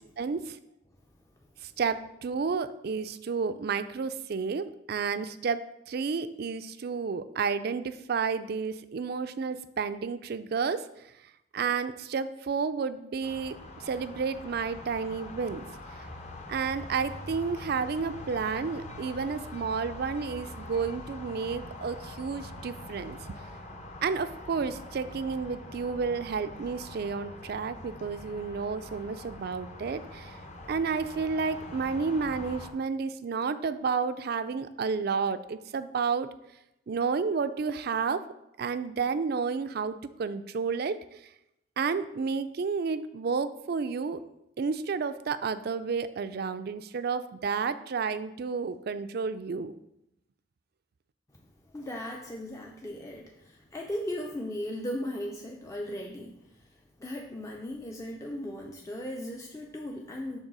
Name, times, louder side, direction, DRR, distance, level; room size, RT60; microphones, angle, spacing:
voice 1, 0.2-0.6 1.6-10.9 11.5-13.6 13.8-15.7 16.5-23.4 24.0-30.4 30.7-36.3 36.9-38.2 38.6-41.0 41.8-44.2 44.6-49.7, right 5 dB, 55° right, 12 dB, 0.4 m, -31 dB
sound 1, 13.2-32.7, left 1 dB, 35° left, 0.8 m, -44 dB
voice 2, 51.7-60.4, left 1 dB, 15° left, 0 dB, 0.5 m, -37 dB
6.4 x 3.8 x 6.1 m, 0.85 s
head